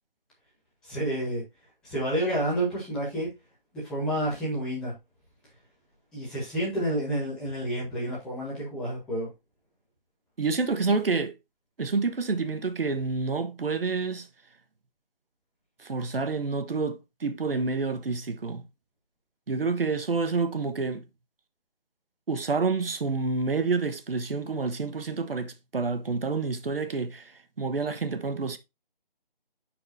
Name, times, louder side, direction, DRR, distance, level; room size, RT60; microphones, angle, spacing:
voice 1, 0.8-1.4 1.8-3.3 3.8-4.9 6.1-9.3, right 1 dB, ahead, 1.0 m, -29 dB
voice 2, 10.4-11.3 11.8-14.3 15.8-18.6 19.5-21.0 22.3-27.3 27.6-28.6, right 4 dB, 75° right, 1.2 m, -28 dB
10.5 x 4.6 x 2.6 m
figure-of-eight pair, 170°, 29 cm